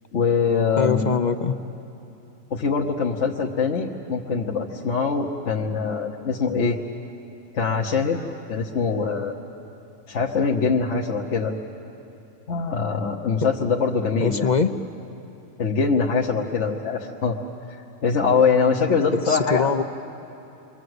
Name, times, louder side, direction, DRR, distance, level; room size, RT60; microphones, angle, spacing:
voice 1, 0.1-1.0 2.5-6.8 7.5-8.2 8.5-9.4 10.1-11.6 12.5-14.5 15.6-17.4 18.0-19.7, left 5 dB, 60° left, -2 dB, 1.5 m, -23 dB
voice 2, 0.8-1.6 14.2-14.7 19.3-19.8, left 5 dB, 40° left, 9 dB, 0.7 m, -22 dB
29.0 x 23.0 x 8.0 m, 2.9 s
omnidirectional pair, 1.4 m